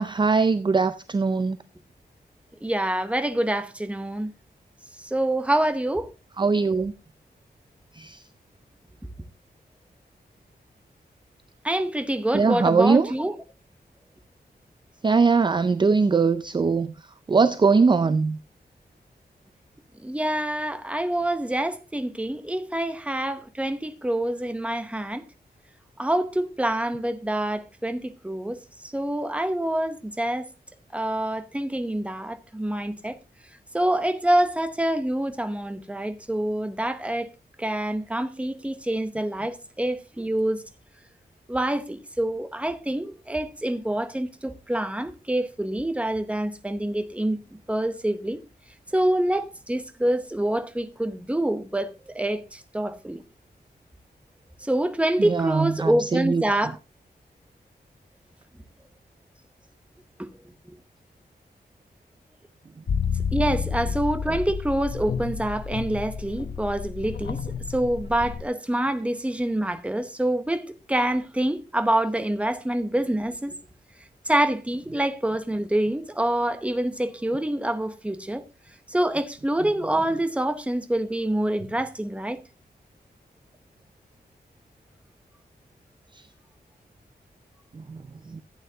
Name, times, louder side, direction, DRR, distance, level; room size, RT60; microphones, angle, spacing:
voice 1, 0.0-1.6 6.4-6.9 7.9-8.2 12.3-13.1 15.0-16.9 17.3-18.4 55.2-56.4 87.7-88.4, right 4 dB, 30° right, 0.4 m, -21 dB
voice 2, 2.6-4.3 5.0-6.1 11.6-13.4 20.0-25.2 26.0-30.5 30.9-33.2 33.7-37.3 37.6-40.6 41.5-47.4 47.7-48.4 48.9-53.2 54.6-56.8 63.3-67.4 67.7-73.5 74.3-78.4 78.9-82.4, right 1 dB, 5° right, 0.8 m, -26 dB
sound 1, 62.9-68.4, left 6 dB, 85° left, 0.9 m, -30 dB
14.5 x 8.9 x 2.8 m
wide cardioid pair, 155°, 17 cm